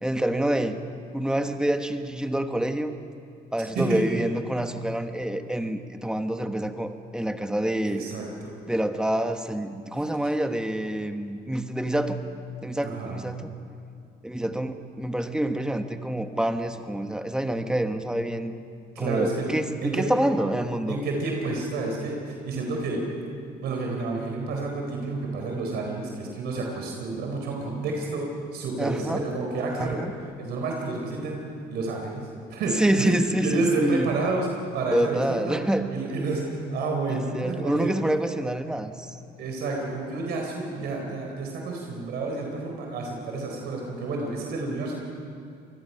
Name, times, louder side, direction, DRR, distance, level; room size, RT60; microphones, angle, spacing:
voice 1, 0.0-0.8 1.1-3.0 3.5-8.0 8.7-12.2 12.6-13.5 14.2-18.5 19.0-21.0 28.8-29.2 29.8-30.1 32.8-34.1 34.9-35.9 37.1-39.1 41.0-41.2, right 1 dB, 5° right, 7 dB, 1.3 m, -27 dB
voice 2, 7.9-8.5 12.8-13.2 18.9-19.5 19.8-20.1 20.9-23.0 23.6-30.0 30.4-35.6 35.9-37.9 39.4-45.0, right 3 dB, 75° right, 0 dB, 4.1 m, -30 dB
27.0 x 20.0 x 5.7 m, 2.5 s
cardioid pair, 110°, 17 cm